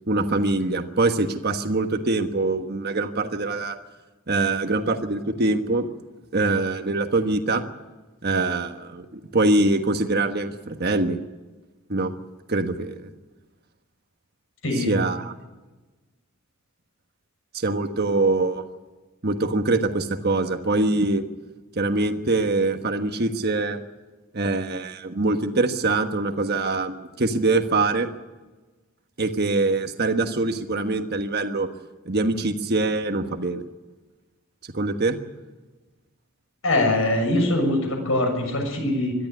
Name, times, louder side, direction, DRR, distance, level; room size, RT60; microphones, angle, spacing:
voice 1, 0.1-3.8 4.3-5.9 6.3-7.6 8.2-11.2 11.9-12.1 12.5-13.1 14.8-15.3 17.5-18.6 19.2-21.2 21.8-23.8 24.3-28.1 29.2-31.7 32.1-33.6 34.7-35.2, right 2 dB, 50° right, 6 dB, 1.3 m, -23 dB
voice 2, 14.6-14.9 36.6-39.1, left 1 dB, 70° left, 4 dB, 6.6 m, -22 dB
22.0 x 13.5 x 9.5 m, 1.2 s
head